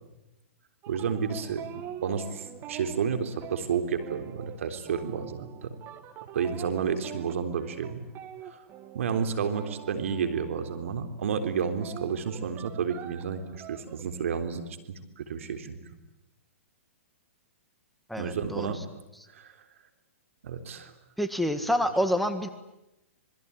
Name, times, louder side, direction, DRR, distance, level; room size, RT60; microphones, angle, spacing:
sound 1, 0.8-11.0 11.3-14.0, right 11 dB, 30° right, 2.0 m, -44 dB
voice 1, 0.9-5.7 6.3-8.0 8.9-14.6 14.9-15.8 18.2-18.8 19.3-19.5 20.4-20.9, right 6 dB, 70° right, 8 dB, 3.7 m, -31 dB
voice 2, 18.1-18.8 21.2-22.5, equal, ahead, 8 dB, 1.7 m, -27 dB
26.5 x 22.0 x 10.0 m, 0.93 s
hypercardioid pair, 130°, 8 cm